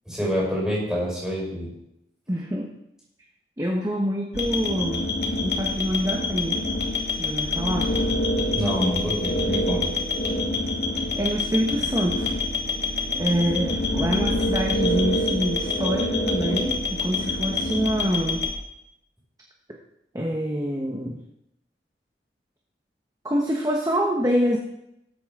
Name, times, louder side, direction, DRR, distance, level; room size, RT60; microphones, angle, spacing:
voice 1, 0.1-1.7 8.5-9.9, equal, 5° right, -5 dB, 5.6 m, -27 dB
voice 2, 2.3-2.7 3.6-5.1 5.4-6.6 7.1-7.9 11.2-12.3 13.1-18.4 20.1-21.2 23.2-24.6, equal, 20° right, -1 dB, 1.1 m, -26 dB
sound 1, 4.3-18.5, left 2 dB, 70° left, 1.9 m, -26 dB
19.5 x 8.3 x 3.8 m, 0.82 s
head